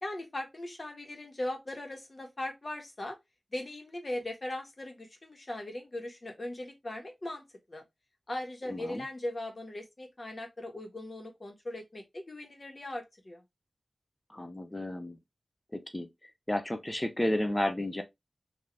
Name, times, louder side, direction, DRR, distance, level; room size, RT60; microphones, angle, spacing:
voice 1, 0.0-3.2 3.5-7.8 8.3-13.4, left 1 dB, 45° left, 1.5 m, -39 dB
voice 2, 8.7-9.0 14.3-15.2 15.7-16.1 16.5-18.0, left 1 dB, 20° left, 0.7 m, -32 dB
3.8 x 2.9 x 3.3 m
wide cardioid pair, 65°, 0 cm